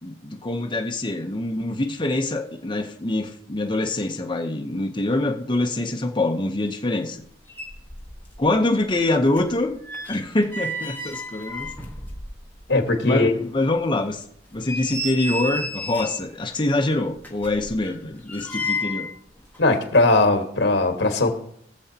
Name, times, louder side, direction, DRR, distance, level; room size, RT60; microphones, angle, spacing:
voice 1, 0.0-7.2 8.4-9.7 10.1-11.7 13.0-14.2 14.5-19.1, left 2 dB, 25° left, 3 dB, 0.8 m, -24 dB
sound 1, 7.2-7.3 7.5-8.5 8.8-12.7 13.1-13.2 13.7-13.8 14.4-16.3 17.2-19.2 19.4-19.6, left 1 dB, 10° left, 1.4 m, -32 dB
voice 2, 12.7-13.3 19.6-21.3, left 2 dB, 75° left, 4 dB, 1.6 m, -19 dB
21.0 x 7.1 x 2.9 m, 0.68 s
head